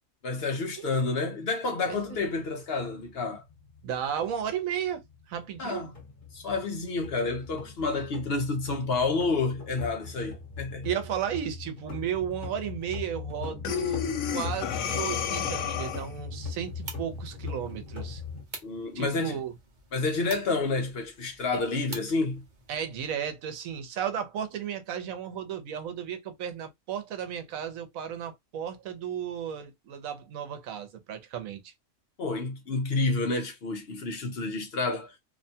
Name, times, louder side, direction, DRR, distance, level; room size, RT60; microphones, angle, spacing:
voice 1, 0.2-3.4 5.6-5.9 6.3-10.9 18.6-19.4 19.9-22.4 32.2-35.2, left 3 dB, 55° left, 0.8 m, -29 dB
voice 2, 1.9-2.2 3.8-5.9 10.8-14.0 14.3-18.2 18.9-19.5 21.5-21.6 22.7-31.7, right 9 dB, 85° right, 1.1 m, -34 dB
sound 1, 2.1-18.4, left 5 dB, 40° left, 1.3 m, -40 dB
Breathing, 13.6-16.2, left 9 dB, 80° left, 1.0 m, -31 dB
sound 2, 16.5-22.8, right 3 dB, 40° right, 0.8 m, -47 dB
2.9 x 2.2 x 2.6 m
omnidirectional pair, 1.4 m